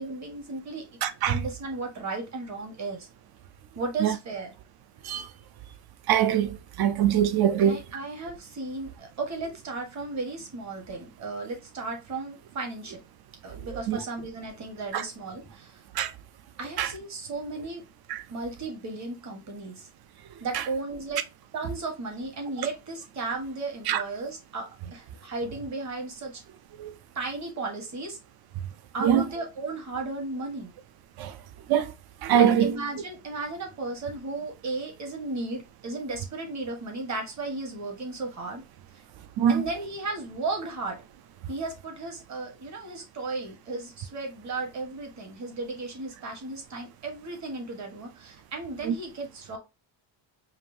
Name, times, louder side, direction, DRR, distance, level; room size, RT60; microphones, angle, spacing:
voice 1, 0.0-0.8 1.2-3.1 3.7-4.5 7.6-13.0 13.4-15.8 16.6-17.8 18.3-19.9 20.4-21.2 21.5-26.4 27.1-28.2 28.9-30.7 32.3-38.6 39.5-41.0 41.5-49.6, right 3 dB, 35° right, 1.5 m, -35 dB
voice 2, 1.0-1.4 4.0-4.1 5.0-5.3 6.1-7.8 13.9-14.0 14.9-15.0 16.0-16.1 16.8-16.9 18.1-18.2 23.9-24.0 26.8-26.9 29.0-29.2 31.2-31.3 31.7-31.9 32.2-32.7 39.4-39.6 48.8-48.9, right 9 dB, 55° right, 0.6 m, -23 dB
5.1 x 2.6 x 2.7 m
cardioid pair, 155°, 46 cm